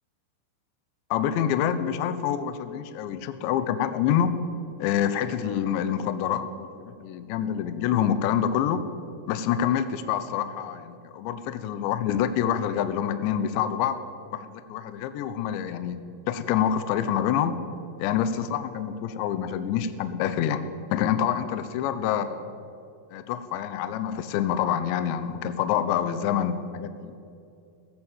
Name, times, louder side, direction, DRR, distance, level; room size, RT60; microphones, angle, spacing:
voice 1, 1.1-4.4 4.8-8.8 9.3-14.0 14.3-16.0 16.3-17.6 18.0-20.6 20.9-22.5 23.1-27.2, left 9 dB, 75° left, 11 dB, 3.0 m, -26 dB
21.0 x 16.5 x 7.6 m, 2.6 s
omnidirectional pair, 5.8 m